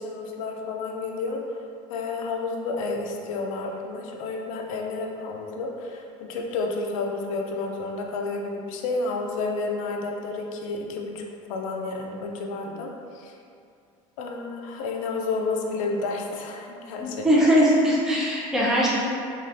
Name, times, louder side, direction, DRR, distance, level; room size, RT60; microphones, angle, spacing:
voice 1, 0.0-1.6 1.9-11.2 11.5-13.3 14.2-17.5, left 3 dB, 85° left, 1 dB, 0.4 m, -31 dB
voice 2, 17.0-18.9, equal, 5° right, -7 dB, 0.6 m, -20 dB
3.1 x 2.3 x 2.7 m, 2.4 s
supercardioid pair, 95°, 17 cm